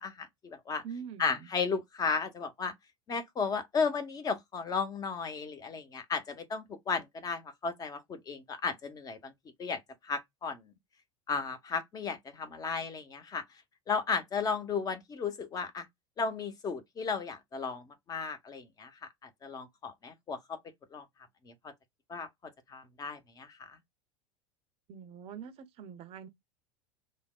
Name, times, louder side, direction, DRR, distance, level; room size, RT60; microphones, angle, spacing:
voice 1, 0.0-0.8 1.2-2.7 3.1-9.3 9.6-10.7 11.3-13.4 13.9-15.9 16.2-18.9 19.2-20.6 20.9-21.0 21.5-21.7 22.1-22.3 22.7-23.8, left 5 dB, 20° left, 0.7 m, -34 dB
voice 2, 0.8-1.5 24.9-26.3, right 7 dB, 35° right, 0.6 m, -44 dB
3.3 x 2.1 x 2.2 m
figure-of-eight pair, 80°, 17 cm